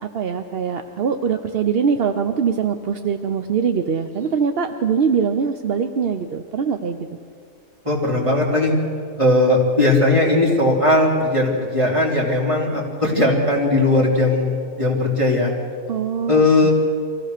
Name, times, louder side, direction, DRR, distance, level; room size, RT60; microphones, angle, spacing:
voice 1, 0.0-7.1 15.9-16.7, right 6 dB, 50° right, 7 dB, 0.7 m, -22 dB
voice 2, 7.8-8.7 9.2-15.5 16.3-16.7, left 2 dB, 20° right, -3 dB, 3.7 m, -18 dB
24.5 x 16.5 x 6.6 m, 2.3 s
omnidirectional pair, 1.7 m